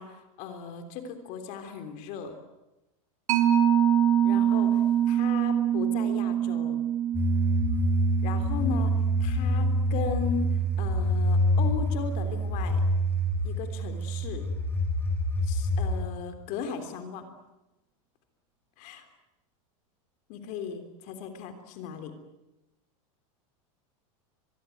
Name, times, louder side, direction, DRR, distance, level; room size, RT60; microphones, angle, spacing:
voice 1, 0.0-2.4 4.2-6.8 8.2-12.8 13.4-14.5 15.4-17.3 18.8-19.1 20.3-22.1, left 6 dB, 45° left, 7 dB, 3.4 m, -37 dB
Mallet percussion, 3.3-10.3, right 9 dB, 90° right, 5.5 m, -25 dB
sound 1, 7.1-16.0, equal, 15° left, 3.4 m, -26 dB
24.5 x 22.5 x 9.3 m, 0.97 s
supercardioid pair, 150°, 18 cm